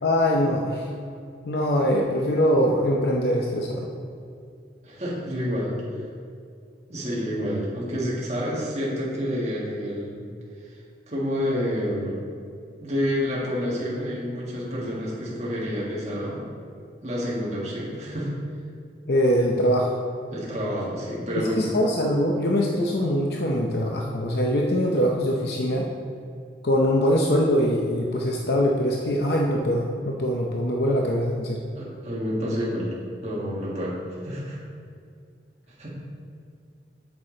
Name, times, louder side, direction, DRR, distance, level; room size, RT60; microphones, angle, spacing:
voice 1, 0.0-0.9 1.4-3.9 19.1-19.9 21.4-25.9 26.6-31.6, equal, 65° left, -1 dB, 0.6 m, -23 dB
voice 2, 4.8-5.7 6.9-10.2 11.1-12.2 12.8-16.4 17.0-18.3 20.3-21.7 31.7-32.9 33.2-34.6 35.8-35.9, equal, 40° right, -6 dB, 1.6 m, -28 dB
8.4 x 6.9 x 3.8 m, 2.3 s
head